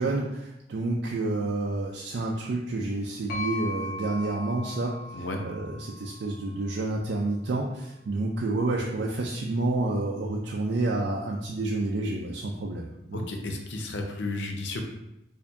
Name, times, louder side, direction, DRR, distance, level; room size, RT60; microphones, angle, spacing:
voice 1, 0.0-13.2, right 2 dB, 70° right, -2 dB, 0.4 m, -29 dB
sound 1, 3.3-7.1, left 1 dB, 50° left, 0.9 m, -38 dB
voice 2, 13.1-14.9, left 2 dB, 75° left, 3 dB, 0.6 m, -33 dB
4.5 x 2.6 x 2.6 m, 0.87 s
head